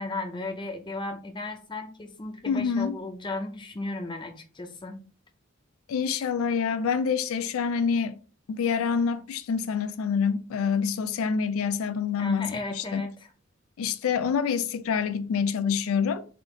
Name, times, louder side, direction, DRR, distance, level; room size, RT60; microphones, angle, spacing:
voice 1, 0.0-5.0 12.2-13.3, left 2 dB, 20° left, 0.6 m, -35 dB
voice 2, 2.5-3.0 5.9-8.1 8.5-13.0 13.8-16.2, left 6 dB, 85° left, 0.3 m, -27 dB
3.5 x 2.5 x 3.7 m
head